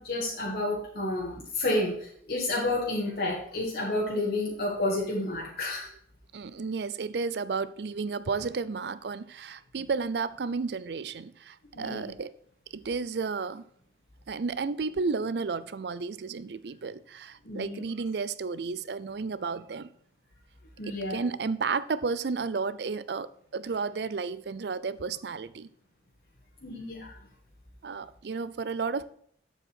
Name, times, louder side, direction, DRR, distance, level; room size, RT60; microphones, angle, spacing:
voice 1, 0.0-5.9 11.7-12.1 17.4-17.8 20.8-21.2 26.6-27.1, left 2 dB, 60° left, 1.7 m, -30 dB
voice 2, 6.3-12.3 12.7-13.6 14.3-19.9 20.9-25.7 27.8-29.1, right 4 dB, 70° right, 0.5 m, -32 dB
7.9 x 7.3 x 4.3 m
head